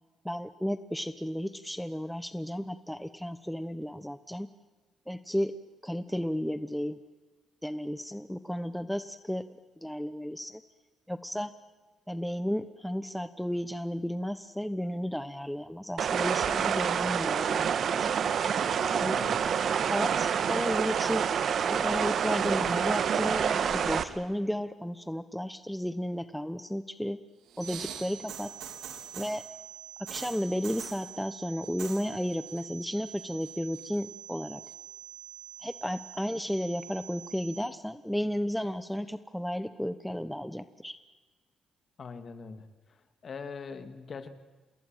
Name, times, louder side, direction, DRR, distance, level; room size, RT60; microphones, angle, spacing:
voice 1, 0.2-4.5 5.1-5.5 5.8-7.0 7.6-9.4 9.8-10.6 11.1-11.5 12.1-18.1 18.8-19.2 19.9-21.4 21.7-27.2 27.6-28.5 29.1-29.4 30.1-34.6 35.6-41.0, equal, ahead, 12 dB, 1.0 m, -33 dB
sound 1, 16.0-24.0, right 7 dB, 60° right, 1.6 m, -27 dB
voice 2, 19.1-19.4 42.0-44.3, left 5 dB, 45° left, 9 dB, 2.5 m, -42 dB
sound 2, 27.5-29.4 30.1-31.0 31.6-32.1 32.3-32.8 33.2-34.0 34.7-34.8, right 8 dB, 80° right, 3.4 m, -43 dB
sound 3, 27.6-37.6, right 9 dB, 35° right, 3.0 m, -47 dB
28.0 x 20.5 x 9.1 m, 1.3 s
cardioid pair, 90°, 0 cm